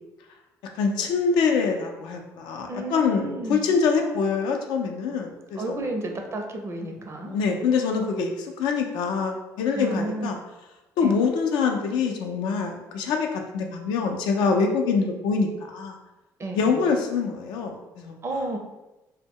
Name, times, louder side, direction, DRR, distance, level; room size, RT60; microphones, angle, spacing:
voice 1, 0.7-5.8 7.3-10.4 11.0-16.0 16.5-18.2, left 5 dB, 80° left, 3 dB, 0.4 m, -25 dB
voice 2, 2.7-3.6 5.6-7.3 9.7-10.3 11.0-11.2 16.4-16.7 18.2-18.6, right 2 dB, 35° right, 3 dB, 0.5 m, -31 dB
2.1 x 2.1 x 3.5 m, 1.0 s
supercardioid pair, 70°, 8 cm